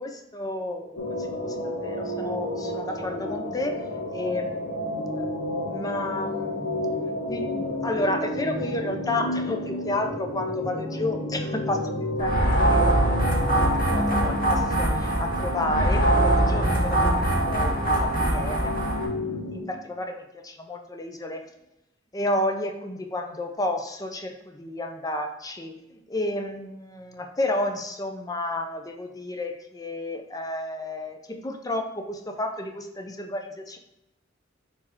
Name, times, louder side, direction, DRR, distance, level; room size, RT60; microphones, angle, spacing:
voice 1, 0.0-5.3 5.6-6.8 7.2-11.9 12.2-12.9 13.9-18.8 19.1-21.5 22.1-33.8, left 1 dB, 20° left, 5 dB, 0.6 m, -31 dB
sound 1, 1.0-19.6, left 1 dB, 85° left, 1.8 m, -31 dB
sound 2, 12.2-19.1, right 1 dB, 50° left, 2.1 m, -23 dB
4.5 x 4.4 x 5.7 m, 0.87 s
head